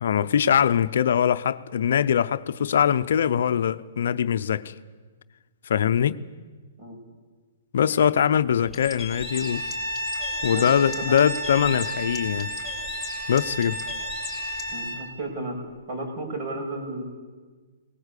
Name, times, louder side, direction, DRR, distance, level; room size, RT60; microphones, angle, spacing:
voice 1, 0.0-4.7 5.7-6.2 7.7-9.6 10.4-12.5 13.3-13.8, left 8 dB, 70° left, 0.7 m, -22 dB
Bird, 8.6-14.7, left 5 dB, ahead, 4.5 m, -39 dB
Bowed string instrument, 9.1-15.0, equal, 65° right, 3.7 m, -32 dB
voice 2, 14.7-15.6 15.9-17.0, right 2 dB, 45° right, 7.3 m, -33 dB
19.0 x 18.5 x 8.3 m
hypercardioid pair, 135°, 0 cm